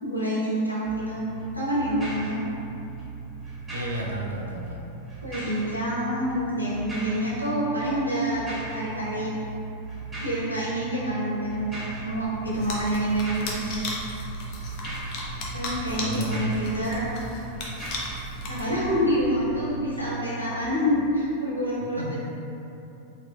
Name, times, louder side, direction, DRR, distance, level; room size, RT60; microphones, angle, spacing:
voice 1, 0.0-1.2 1.5-2.5 5.2-9.4 10.2-13.9 15.5-17.0 18.5-22.1, equal, 85° left, -8 dB, 0.8 m, -27 dB
sound 1, 0.8-20.6, right 3 dB, 15° right, 0.7 m, -38 dB
voice 2, 3.7-4.9 16.0-16.5 22.0-22.4, right 1 dB, 80° right, -2 dB, 0.5 m, -32 dB
sound 2, 12.1-20.1, right 1 dB, 60° left, 1.3 m, -49 dB
sound 3, 12.5-19.1, left 2 dB, 40° left, 0.6 m, -36 dB
4.3 x 2.8 x 2.3 m, 2.8 s
figure-of-eight pair, 90°, 0 cm